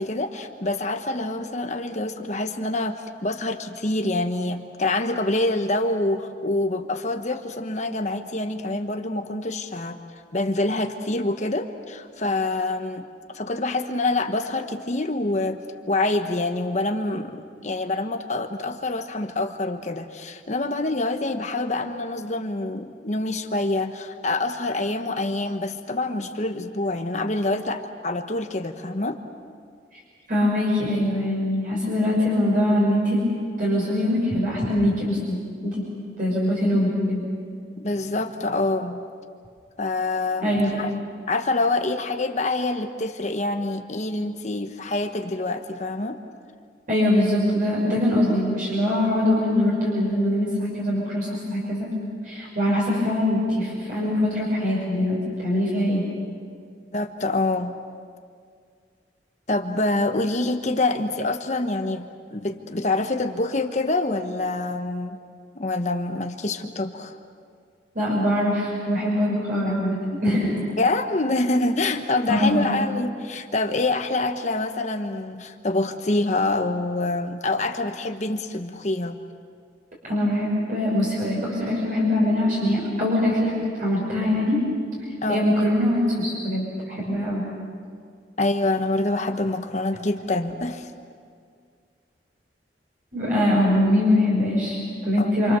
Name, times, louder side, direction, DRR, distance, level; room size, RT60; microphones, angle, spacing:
voice 1, 0.0-10.0 10.3-13.1 13.3-29.2 37.8-39.0 39.8-40.9 41.3-46.2 56.9-57.7 59.5-65.2 65.5-67.2 70.8-79.2 85.2-85.7 88.4-90.9 95.2-95.3, left 2 dB, 40° left, 6 dB, 1.2 m, -26 dB
voice 2, 30.3-33.2 33.6-35.8 36.2-37.2 40.4-40.7 46.9-51.9 52.2-56.0 67.9-70.7 72.3-72.7 80.0-84.6 85.3-87.4 93.1-95.6, left 1 dB, 50° right, -5 dB, 6.4 m, -23 dB
28.5 x 26.0 x 6.9 m, 2.2 s
head